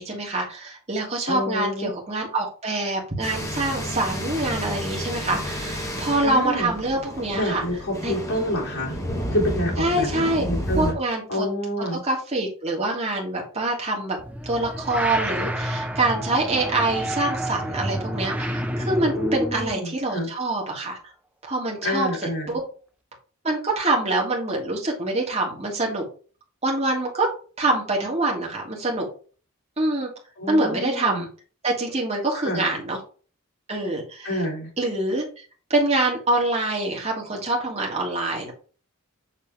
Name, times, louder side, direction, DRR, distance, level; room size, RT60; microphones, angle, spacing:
voice 1, 0.0-7.6 8.0-8.1 9.8-10.4 10.8-11.5 12.0-14.2 14.4-21.0 21.4-22.1 22.5-22.6 23.4-26.0 26.6-27.3 27.6-29.1 29.8-30.1 30.5-31.3 31.6-33.0 33.7-34.4 34.8-35.4 35.7-38.5, right 2 dB, 30° right, -1 dB, 1.6 m, -25 dB
voice 2, 1.3-1.9 6.2-6.7 7.3-9.0 9.3-10.9 11.3-12.0 19.1-20.3 21.8-22.5 30.4-31.2 32.3-32.7 34.2-34.7, equal, 80° left, -4 dB, 3.2 m, -28 dB
sound 1, 3.2-10.9, equal, 15° left, 1.3 m, -31 dB
sound 2, 14.2-19.7, equal, 5° right, 0.5 m, -29 dB
7.0 x 3.3 x 4.5 m, 0.39 s
head